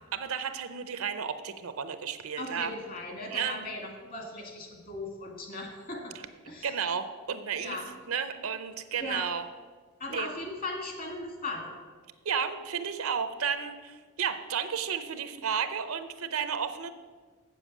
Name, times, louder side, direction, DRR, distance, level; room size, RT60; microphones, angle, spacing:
voice 1, 0.1-2.7 3.3-3.6 6.6-7.8 8.1-9.4 10.1-10.3 12.2-16.9, right 7 dB, 70° right, 11 dB, 0.7 m, -32 dB
voice 2, 2.4-6.7 7.6-7.8 9.0-9.3 10.0-11.7, left 2 dB, 45° left, 2 dB, 2.1 m, -38 dB
7.7 x 7.1 x 7.2 m, 1.5 s
head